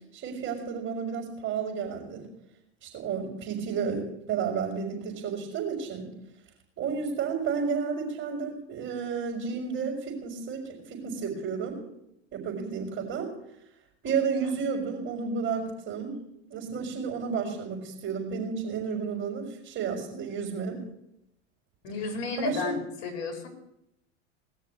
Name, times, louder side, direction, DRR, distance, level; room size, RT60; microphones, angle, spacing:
voice 1, 0.1-2.3 2.8-6.1 6.8-11.7 12.3-13.3 14.0-16.2 16.5-20.8 22.4-22.7, right 6 dB, 35° right, -4 dB, 4.7 m, -32 dB
voice 2, 21.8-23.5, left 5 dB, 60° left, 5 dB, 4.4 m, -32 dB
19.0 x 6.5 x 9.3 m, 0.82 s
hypercardioid pair, 105°, 35 cm